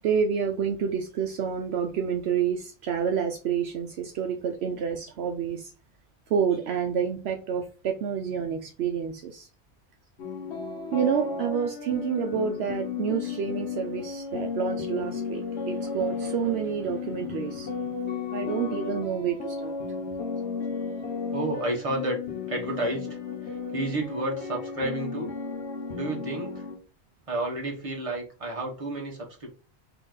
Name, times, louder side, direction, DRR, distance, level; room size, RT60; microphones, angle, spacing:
voice 1, 0.0-5.7 6.3-9.5 10.9-17.9 18.3-19.7, right 7 dB, 70° right, 0.8 m, -28 dB
sound 1, 10.2-26.8, left 5 dB, 75° left, 1.3 m, -34 dB
voice 2, 21.3-22.2 22.5-23.2 23.4-25.3 25.9-26.7 27.3-29.5, right 2 dB, 30° right, 1.3 m, -31 dB
4.3 x 2.9 x 3.8 m
omnidirectional pair, 1.2 m